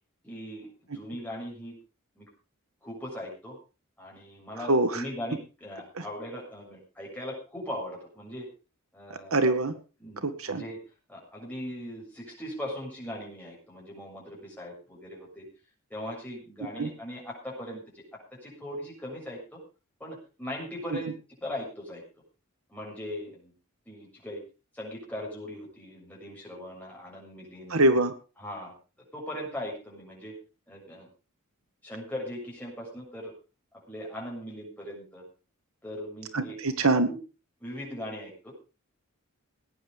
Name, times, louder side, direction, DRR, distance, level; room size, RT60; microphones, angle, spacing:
voice 1, 0.2-1.8 2.2-2.3 2.8-3.6 4.0-8.5 8.9-9.5 10.0-10.8 11.1-15.5 15.9-19.6 20.0-21.1 21.4-22.0 22.7-23.5 23.9-24.4 24.7-27.8 28.4-28.7 29.1-30.3 30.7-31.1 31.8-33.3 33.9-35.2 35.8-36.6 37.1-37.2 37.6-38.5, left 1 dB, 5° left, -3 dB, 6.9 m, -39 dB
voice 2, 4.7-5.0 5.9-6.0 9.3-9.7 10.2-10.6 16.8-16.9 27.7-28.1 36.3-37.1, right 2 dB, 75° right, 10 dB, 1.6 m, -24 dB
19.0 x 9.5 x 5.1 m, 0.34 s
head